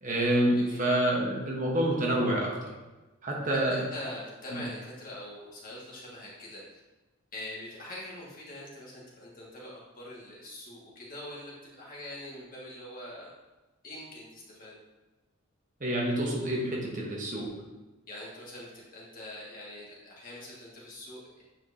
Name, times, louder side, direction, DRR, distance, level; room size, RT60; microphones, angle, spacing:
voice 1, 0.0-2.7 3.2-3.9 4.5-4.6 15.8-17.5, right 1 dB, 35° right, -2 dB, 1.1 m, -28 dB
voice 2, 0.5-0.9 3.4-6.6 7.3-13.3 13.8-14.7 18.1-21.4, left 1 dB, 40° left, -5 dB, 1.8 m, -43 dB
9.1 x 4.4 x 2.7 m, 1.1 s
head